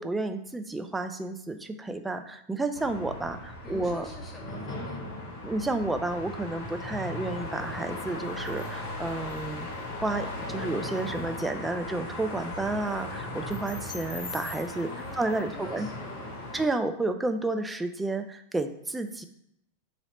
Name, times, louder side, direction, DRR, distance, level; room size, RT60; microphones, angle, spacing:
voice 1, 0.0-4.1 5.4-9.7 10.0-15.9 16.5-19.2, right 2 dB, 10° right, 7 dB, 0.3 m, -31 dB
sound 1, 2.7-16.7, left 2 dB, 50° left, 0.9 m, -37 dB
voice 2, 3.6-5.0 14.8-16.4, left 2 dB, 10° left, -1 dB, 0.8 m, -45 dB
2.8 x 2.8 x 4.2 m, 0.75 s
figure-of-eight pair, 90°, 0 cm